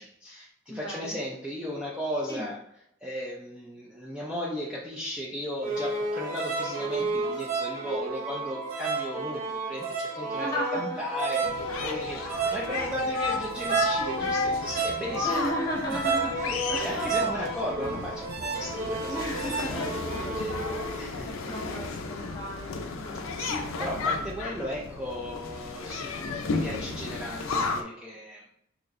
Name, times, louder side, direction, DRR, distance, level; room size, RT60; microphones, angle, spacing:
voice 1, 0.0-2.6 3.0-15.4 15.9-16.0 16.3-20.6 21.0-21.8 23.4-28.5, equal, 5° right, -5 dB, 0.4 m, -36 dB
voice 2, 0.7-1.2 2.3-2.5 10.4-11.0 15.2-17.2 17.7-18.1 19.1-19.9 21.2-23.7, equal, 20° left, -3 dB, 1.2 m, -35 dB
sound 1, 5.6-21.0, right 3 dB, 45° right, 0.8 m, -31 dB
sound 2, 11.4-27.8, left 4 dB, 80° left, 0.5 m, -34 dB
4.2 x 2.8 x 2.5 m, 0.77 s
head